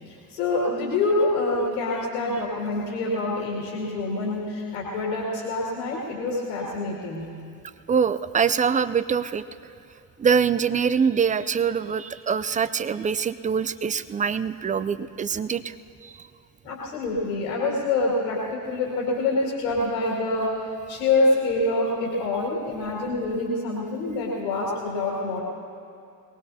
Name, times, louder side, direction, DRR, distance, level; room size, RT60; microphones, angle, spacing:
voice 1, 0.1-7.3 16.6-20.6 20.9-25.4, left 2 dB, 80° left, -4 dB, 2.5 m, -26 dB
voice 2, 7.9-9.4 10.2-15.7, right 6 dB, 20° right, 15 dB, 0.4 m, -24 dB
23.0 x 19.0 x 2.8 m, 2.4 s
hypercardioid pair, 55°, 47 cm